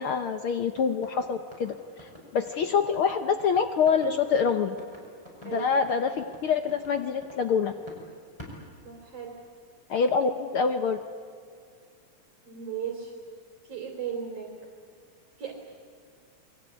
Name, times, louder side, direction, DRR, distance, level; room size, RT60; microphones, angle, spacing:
voice 1, 0.0-1.7 2.0-4.8 5.4-7.7 9.9-11.0, left 6 dB, 75° left, 8 dB, 1.2 m, -26 dB
sound 1, 0.8-8.0 8.4-9.5, equal, 10° left, 5.6 m, -48 dB
voice 2, 8.8-9.4 12.5-13.1 13.6-14.5 15.4-15.5, right 8 dB, 50° right, 1 dB, 4.0 m, -36 dB
28.0 x 22.0 x 8.3 m, 2.2 s
omnidirectional pair, 3.6 m